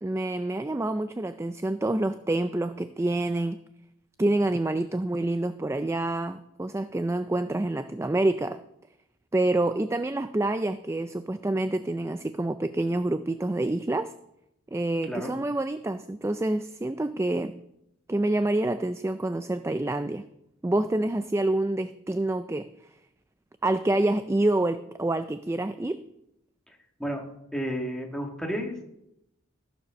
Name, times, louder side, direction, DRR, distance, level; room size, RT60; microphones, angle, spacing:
voice 1, 0.0-3.6 4.2-8.6 9.3-14.1 14.7-17.6 18.1-20.3 20.6-22.7 23.6-26.0, right 2 dB, 15° right, 11 dB, 0.3 m, -27 dB
voice 2, 26.7-27.2 27.5-28.8, equal, 5° left, 1 dB, 2.0 m, -32 dB
14.5 x 7.2 x 6.3 m, 0.81 s
head